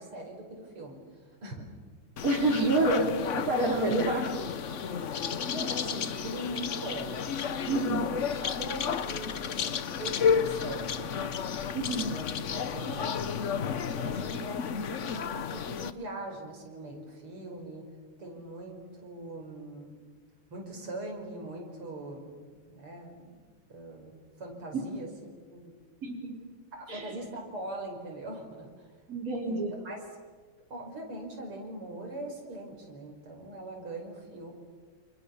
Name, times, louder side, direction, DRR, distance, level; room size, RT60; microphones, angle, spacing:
voice 1, 0.0-1.7 5.0-7.2 7.4-11.4 12.0-12.2 12.5-13.4 13.8-14.5 14.9-17.9 18.2-19.9 20.5-23.4 23.7-25.1 25.5-25.8 26.7-28.9 29.4-30.1 30.7-34.5, right 1 dB, 80° right, 2 dB, 6.1 m, -42 dB
sound 1, 2.2-15.9, left 7 dB, 50° left, 0.9 m, -32 dB
voice 2, 2.2-3.1 3.4-4.2 7.7-8.0 11.7-12.1 24.7-24.8 26.0-26.4 26.9-27.1 29.1-29.7, right 2 dB, 40° right, 0 dB, 4.8 m, -27 dB
29.0 x 29.0 x 7.1 m, 1.5 s
omnidirectional pair, 2.4 m